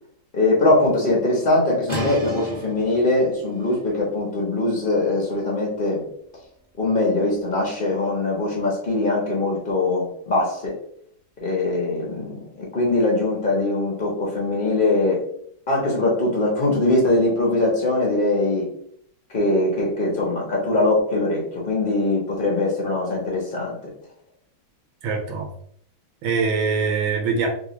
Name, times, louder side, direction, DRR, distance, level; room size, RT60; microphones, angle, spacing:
voice 1, 0.3-6.1 6.8-10.8 11.4-15.2 15.7-18.7 19.3-23.8, left 2 dB, 85° left, -3 dB, 0.4 m, -22 dB
sound 1, 1.9-7.5, left 1 dB, 30° right, 0.5 m, -36 dB
voice 2, 25.0-25.5 26.2-27.5, right 5 dB, 75° right, 1 dB, 1.6 m, -23 dB
3.7 x 2.4 x 2.9 m, 0.65 s
omnidirectional pair, 2.3 m